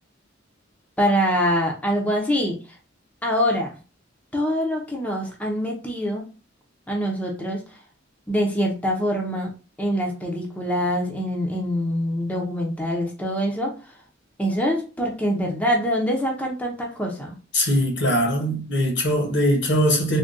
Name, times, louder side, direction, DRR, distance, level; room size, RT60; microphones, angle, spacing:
voice 1, 1.0-2.6 3.2-3.8 4.3-6.2 6.9-7.6 8.3-9.5 9.8-13.7 14.4-17.3, equal, 5° left, 0.5 m, -24 dB
voice 2, 17.5-20.2, equal, 65° left, 0.9 m, -21 dB
3.5 x 2.2 x 2.5 m
head